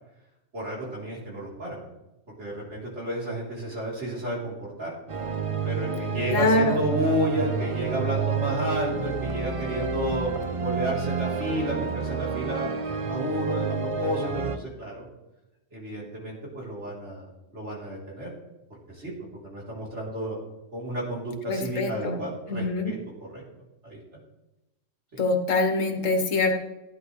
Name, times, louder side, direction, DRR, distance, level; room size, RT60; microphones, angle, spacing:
voice 1, 0.5-1.8 2.4-4.9 5.6-12.7 13.0-15.1 15.7-18.3 18.9-19.1 19.4-20.4 20.7-23.0 23.3-23.4 23.8-24.0 25.1-25.2, right 1 dB, 65° right, -4 dB, 3.7 m, -31 dB
sound 1, 5.1-14.6, right 5 dB, 35° right, 0.6 m, -29 dB
voice 2, 6.3-6.8 21.5-22.2 22.5-22.9 25.2-26.5, left 2 dB, 80° left, 5 dB, 1.6 m, -24 dB
15.0 x 10.0 x 3.1 m, 0.97 s
omnidirectional pair, 1.3 m